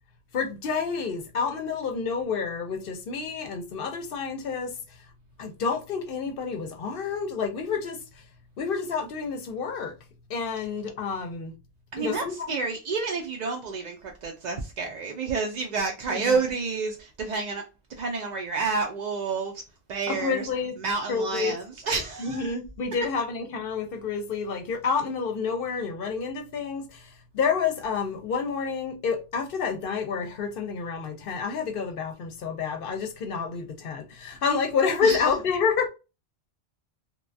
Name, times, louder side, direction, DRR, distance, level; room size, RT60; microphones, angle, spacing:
voice 1, 0.3-4.7 5.4-8.0 8.6-9.9 10.3-11.5 12.0-12.7 16.1-16.4 20.1-20.7 21.1-21.5 22.2-35.9, left 5 dB, 65° left, 0.7 m, -29 dB
voice 2, 11.9-17.7 18.0-19.6 19.9-20.5 20.8-22.5 35.0-35.2, right 4 dB, 55° right, 0.5 m, -29 dB
3.0 x 2.2 x 2.5 m
omnidirectional pair, 1.1 m